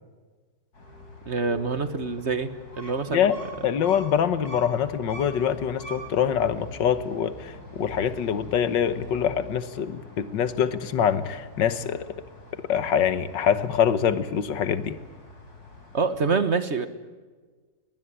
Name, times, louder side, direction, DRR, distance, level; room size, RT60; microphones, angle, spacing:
sound 1, 0.7-16.3, left 1 dB, 60° left, 4.9 m, -45 dB
voice 1, 1.3-2.5 2.8-3.2 15.9-16.9, right 4 dB, 40° right, 12 dB, 1.4 m, -25 dB
voice 2, 3.6-12.1 12.7-15.0, left 8 dB, 90° left, 14 dB, 1.9 m, -24 dB
21.5 x 19.5 x 10.0 m, 1.4 s
omnidirectional pair, 1.9 m